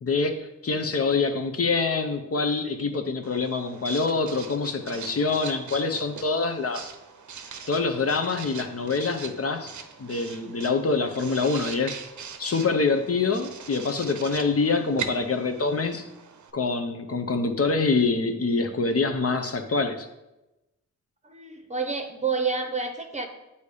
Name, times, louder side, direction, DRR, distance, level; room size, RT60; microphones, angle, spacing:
voice 1, 0.0-6.9 7.7-9.7 10.0-12.0 12.4-16.0 16.5-20.1, left 4 dB, 50° left, 6 dB, 0.6 m, -25 dB
Writing, 3.2-16.5, right 6 dB, 75° right, 0.6 m, -41 dB
voice 2, 21.2-23.3, right 4 dB, 25° right, 5 dB, 0.7 m, -29 dB
8.2 x 2.8 x 4.8 m, 0.96 s
wide cardioid pair, 80°, 30 cm